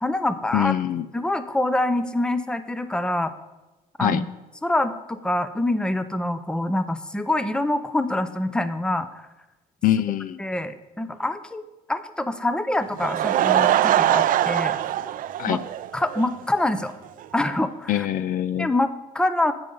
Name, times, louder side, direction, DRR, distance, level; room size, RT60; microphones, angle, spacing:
voice 1, 0.0-0.7 1.1-3.3 4.0-4.3 4.6-9.3 10.4-14.8 15.5-15.6 15.9-16.9 17.3-18.1 18.6-19.5, left 1 dB, 5° left, 12 dB, 0.6 m, -25 dB
voice 2, 0.5-1.1 4.0-4.2 9.8-10.4 15.4-15.6 17.9-18.7, left 11 dB, 55° left, 15 dB, 0.4 m, -23 dB
Laughter / Crowd, 12.8-16.3 16.6-16.7 17.2-17.3 17.5-17.6, right 11 dB, 55° right, 0.4 m, -22 dB
8.8 x 8.0 x 5.4 m, 1.1 s
cardioid pair, 110°, 17 cm